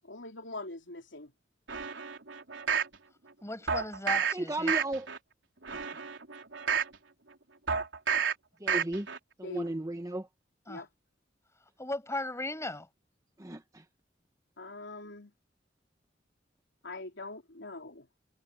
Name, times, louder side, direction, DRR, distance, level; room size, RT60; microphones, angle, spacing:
voice 1, 0.0-1.3 9.4-9.6 10.7-10.9 14.6-15.3 16.8-18.1, left 2 dB, 80° left, 3.1 m, -42 dB
sound 1, 1.7-2.9 3.7-4.3 4.7-5.2 5.6-6.9 7.7-8.3 8.7-9.2 9.6-9.7, right 6 dB, 85° right, 3.8 m, -30 dB
voice 2, 3.4-4.7 10.7-10.8 11.8-12.9, left 2 dB, 15° left, 6.5 m, -37 dB
voice 3, 4.3-5.1 8.6-9.1 9.4-10.3 13.4-13.8, right 1 dB, 20° right, 1.2 m, -34 dB
head